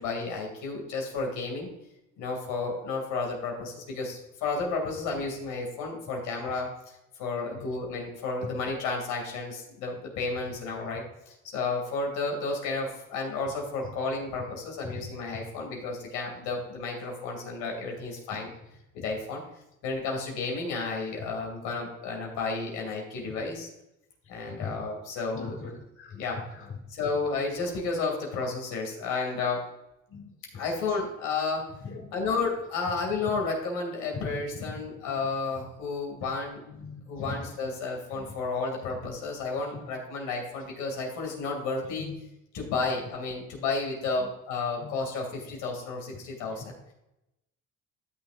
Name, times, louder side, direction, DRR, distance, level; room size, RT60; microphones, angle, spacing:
voice 1, 0.0-1.7 2.2-18.5 18.9-19.4 19.8-23.7 24.3-25.6 26.1-26.4 26.9-29.6 30.5-31.7 32.1-36.6 37.1-42.1 42.5-46.6, left 4 dB, 90° left, 0 dB, 2.7 m, -32 dB
voice 2, 24.4-24.8 25.3-26.8 30.1-30.6 31.8-32.1 33.2-33.3 34.6-34.7 36.8-37.4 38.1-38.3 41.9-42.1 44.8-44.9, left 4 dB, 45° left, 2 dB, 1.6 m, -40 dB
13.0 x 6.3 x 2.6 m, 0.89 s
cardioid pair, 95°, 30 cm